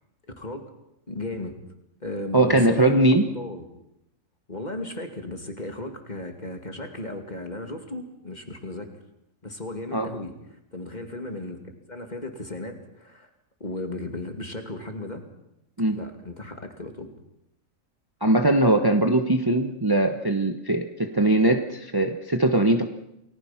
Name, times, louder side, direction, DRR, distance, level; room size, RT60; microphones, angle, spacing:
voice 1, 1.1-1.6 2.0-3.1 3.3-3.7 4.5-8.9 9.4-11.6 11.9-13.3 13.6-15.2 15.9-17.1, left 2 dB, 30° left, 5 dB, 2.7 m, -35 dB
voice 2, 2.3-3.2 9.9-10.1 15.8-16.0 18.2-22.9, right 1 dB, 20° right, 6 dB, 1.2 m, -21 dB
29.0 x 20.0 x 5.9 m, 0.83 s
omnidirectional pair, 1.4 m